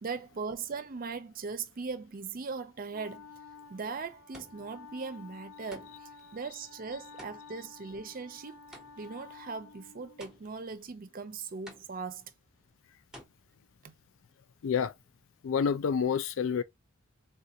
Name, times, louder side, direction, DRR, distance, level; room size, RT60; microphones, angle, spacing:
voice 1, 0.0-3.3 3.7-8.6 9.0-12.3 13.8-13.9, right 4 dB, 45° right, 0.5 m, -39 dB
Wind instrument woodwind instrument, 2.9-10.4, left 5 dB, 50° left, 0.7 m, -52 dB
sound 1, 3.3-3.7 4.3-4.9 5.7-6.2 7.2-9.2 10.2-10.8 11.7-12.3 13.1-13.2, equal, 5° right, 0.7 m, -52 dB
voice 2, 14.6-14.9 15.4-16.6, left 6 dB, 70° left, 0.3 m, -28 dB
3.6 x 2.5 x 2.8 m
head